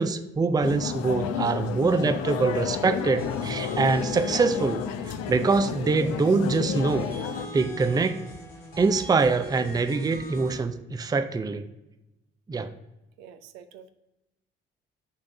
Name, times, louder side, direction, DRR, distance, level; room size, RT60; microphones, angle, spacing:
voice 1, 0.0-7.1 7.5-8.2 8.8-11.7 12.5-12.7, right 4 dB, 15° right, 10 dB, 0.5 m, -24 dB
sound 1, 0.6-7.5, left 8 dB, 55° left, 0.5 m, -31 dB
sound 2, 3.2-10.6, right 1 dB, 85° left, 1.4 m, -41 dB
voice 2, 13.2-13.9, right 8 dB, 65° right, 9 dB, 0.6 m, -47 dB
5.6 x 3.7 x 5.7 m, 0.97 s
figure-of-eight pair, 40°, 29 cm